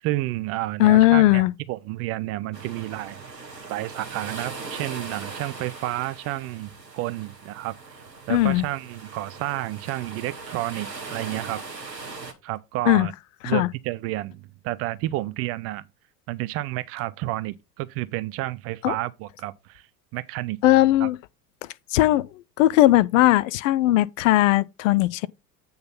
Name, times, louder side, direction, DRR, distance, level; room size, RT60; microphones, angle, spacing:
voice 1, 0.0-3.4 3.7-11.6 12.4-13.1 13.4-15.8 16.3-19.9 20.1-20.6 21.0-21.1, right 17 dB, 30° right, 0.4 m, -31 dB
voice 2, 0.8-1.5 8.3-8.7 12.9-13.1 13.4-13.7 18.8-18.9 20.6-21.2 21.9-22.2 22.6-25.3, left 15 dB, 55° left, 0.6 m, -18 dB
sound 1, 2.5-12.3, right 4 dB, 85° right, 1.3 m, -39 dB
8.6 x 3.9 x 5.5 m
figure-of-eight pair, 70°, 48 cm